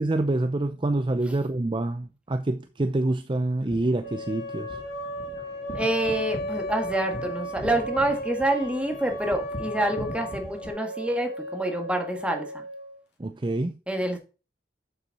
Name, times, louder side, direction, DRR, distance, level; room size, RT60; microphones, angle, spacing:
voice 1, 0.0-4.8 13.2-13.8, right 2 dB, 30° right, 0.5 m, -26 dB
sound 1, 3.5-10.7, left 1 dB, 40° left, 2.5 m, -42 dB
sound 2, 4.0-13.0, equal, 85° left, 3.7 m, -35 dB
voice 2, 5.7-12.5 13.9-14.2, right 1 dB, 5° right, 1.9 m, -27 dB
7.9 x 7.6 x 4.2 m
head